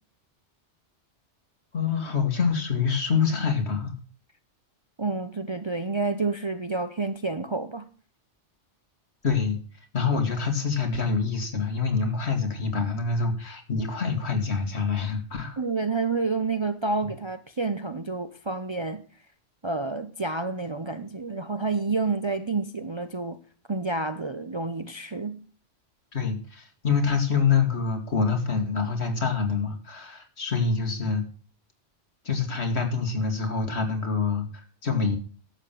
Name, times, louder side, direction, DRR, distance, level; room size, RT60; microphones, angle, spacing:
voice 1, 1.7-3.9 9.2-9.6 9.9-15.6 26.1-31.3 32.3-35.2, left 5 dB, 65° left, 2.2 m, -26 dB
voice 2, 5.0-7.9 15.6-19.0 19.6-23.4 23.7-25.4, right 3 dB, 30° right, 0.6 m, -29 dB
11.5 x 7.4 x 6.7 m
omnidirectional pair, 1.2 m